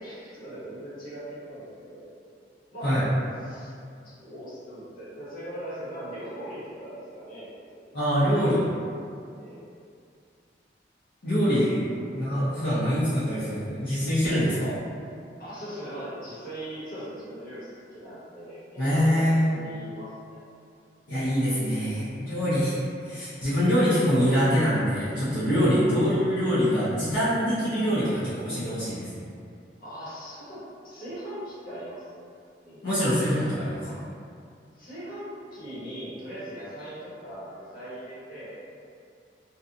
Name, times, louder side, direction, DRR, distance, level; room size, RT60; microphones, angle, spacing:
voice 1, 0.0-2.0 2.7-3.1 3.4-3.7 4.0-7.8 9.4-9.6 11.6-11.7 15.4-20.4 25.6-25.8 29.8-32.1 32.6-32.8 33.8-34.0 34.8-38.6, right 1 dB, 55° left, -11 dB, 1.1 m, -40 dB
voice 2, 7.9-8.6 11.2-11.8 12.1-14.8 18.8-19.5 21.1-22.8 23.0-29.1 32.8-33.9, equal, 70° left, -14 dB, 0.8 m, -24 dB
2.7 x 2.3 x 2.5 m, 2.4 s
head